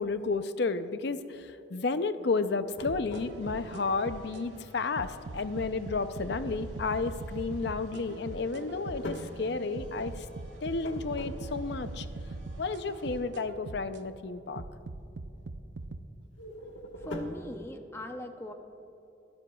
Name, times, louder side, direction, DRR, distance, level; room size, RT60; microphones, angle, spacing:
voice 1, 0.0-10.3 10.6-12.1 12.6-14.6, left 4 dB, 60° left, 11 dB, 0.6 m, -32 dB
sound 1, 2.4-3.8 8.3-11.8 16.3-17.5, equal, 80° left, 1.4 m, -43 dB
sound 2, 2.9-4.4 5.0-9.2 9.8-14.0 14.6-16.0, right 2 dB, 70° right, 0.6 m, -41 dB
sound 3, 3.1-13.2, right 1 dB, 90° right, 3.3 m, -57 dB
voice 2, 17.0-18.5, left 1 dB, 15° left, 5 dB, 0.6 m, -40 dB
24.0 x 13.0 x 2.3 m, 2.9 s
head